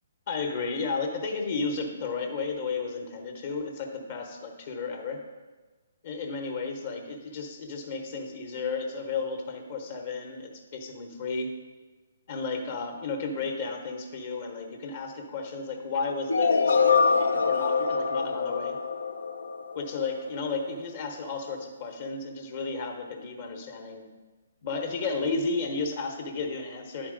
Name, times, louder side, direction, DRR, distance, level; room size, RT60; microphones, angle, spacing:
voice 1, 0.3-5.2 6.0-11.5 12.3-18.8 19.7-24.1 24.6-27.1, left 4 dB, 50° left, 3 dB, 1.0 m, -33 dB
sound 1, 16.3-20.2, left 5 dB, 80° left, 0.4 m, -24 dB
10.0 x 4.4 x 3.8 m, 1.3 s
figure-of-eight pair, 135°, 0 cm